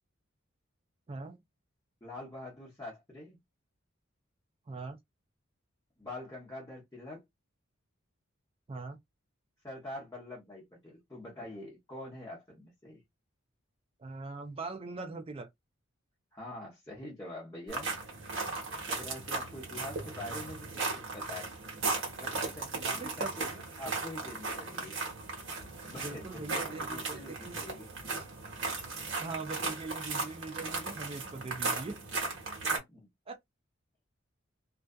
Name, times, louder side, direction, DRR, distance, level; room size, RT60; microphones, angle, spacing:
voice 1, 1.1-1.4 4.7-5.0 8.7-9.0 14.0-15.5 22.9-23.3 26.0-27.6 29.2-32.0 33.3-33.4, right 3 dB, 30° right, 0.4 m, -41 dB
voice 2, 2.0-3.4 6.0-7.2 9.6-13.0 16.3-17.9 18.9-21.5 22.2-25.0 25.8-27.9 30.8-31.0 32.7-33.1, left 1 dB, 15° left, 0.8 m, -45 dB
sound 1, 17.7-32.8, right 3 dB, 65° right, 1.2 m, -36 dB
2.6 x 2.4 x 2.2 m
head